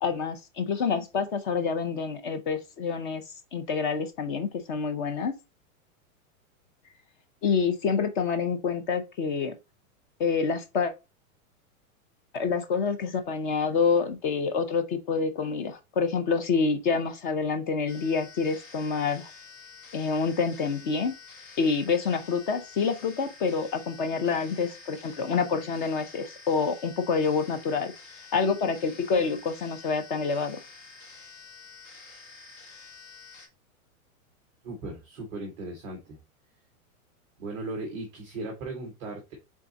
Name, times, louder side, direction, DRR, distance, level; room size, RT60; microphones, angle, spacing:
voice 1, 0.0-3.2 3.5-5.3 7.4-9.5 10.2-10.9 12.3-19.3 19.9-21.1 21.6-27.9 28.3-30.6, left 5 dB, 35° left, 0.6 m, -27 dB
sound 1, 17.9-33.5, left 4 dB, 60° left, 1.6 m, -49 dB
voice 2, 34.6-36.2 37.4-39.3, right 2 dB, 10° right, 0.3 m, -37 dB
3.7 x 3.6 x 3.9 m
supercardioid pair, 160°, 43 cm